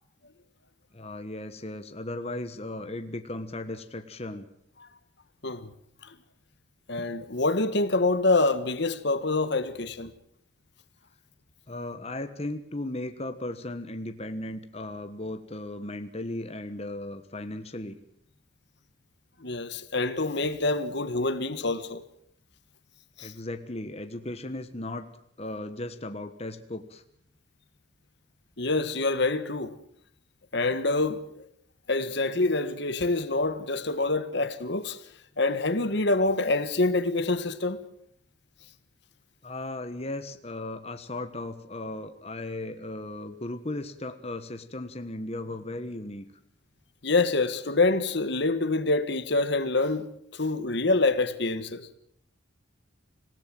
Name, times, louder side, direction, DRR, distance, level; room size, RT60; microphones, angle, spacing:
voice 1, 0.9-4.4 11.7-18.0 23.2-25.1 25.4-27.0 39.4-46.2, left 1 dB, 30° left, 1.4 m, -36 dB
voice 2, 6.9-10.1 19.4-22.0 23.2-23.3 28.6-29.7 30.5-31.5 31.9-35.0 35.4-37.8 47.0-51.9, left 2 dB, 60° left, 1.5 m, -26 dB
26.5 x 17.0 x 7.7 m
head